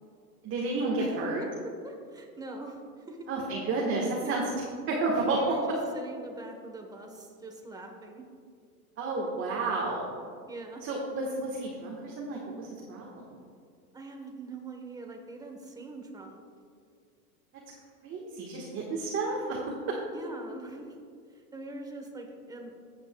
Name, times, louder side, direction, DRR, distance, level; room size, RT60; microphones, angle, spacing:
voice 1, 0.4-1.4 3.3-4.4 4.9-5.5 9.0-10.1 10.8-13.2 18.0-19.6 19.9-20.0, right 3 dB, 25° right, -3 dB, 1.3 m, -31 dB
voice 2, 1.0-1.5 1.8-3.2 4.2-4.5 5.4-8.2 10.5-10.8 13.9-16.4 20.1-21.0 21.3-22.7, right 2 dB, 10° right, 3 dB, 1.0 m, -43 dB
14.0 x 8.1 x 2.2 m, 2.2 s
supercardioid pair, 130°, 45 cm